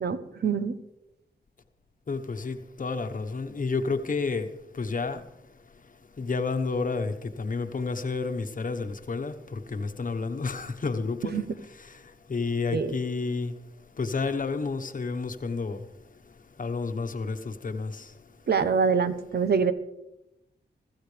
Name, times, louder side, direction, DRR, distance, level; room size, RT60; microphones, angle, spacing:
voice 1, 0.0-0.7 11.2-11.5 12.7-13.0 18.5-19.7, right 6 dB, 65° right, 1.0 m, -25 dB
voice 2, 2.1-4.5 4.7-5.2 6.2-11.4 11.8-12.0 12.3-13.5 14.0-15.8 16.6-18.1, left 4 dB, 50° left, 1.2 m, -30 dB
23.0 x 14.0 x 3.4 m
wide cardioid pair, 95°, 18 cm